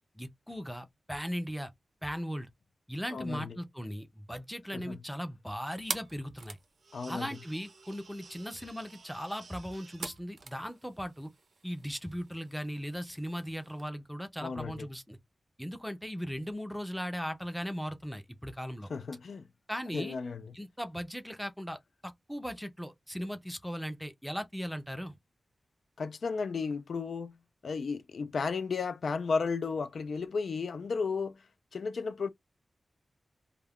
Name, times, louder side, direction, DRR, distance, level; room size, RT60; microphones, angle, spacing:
voice 1, 0.1-1.7 2.0-2.5 2.9-6.6 7.1-11.3 11.6-15.2 15.6-18.9 19.7-20.2 20.5-25.1, equal, ahead, 0.5 m, -38 dB
voice 2, 3.1-3.6 4.7-5.0 6.9-7.4 14.4-14.9 18.9-19.5 19.9-20.6 26.0-27.4 27.6-31.4 31.7-32.3, left 5 dB, 75° left, 0.3 m, -34 dB
sound 1, 5.5-13.9, right 4 dB, 65° right, 0.6 m, -46 dB
2.3 x 2.2 x 3.4 m
wide cardioid pair, 125°, 0 cm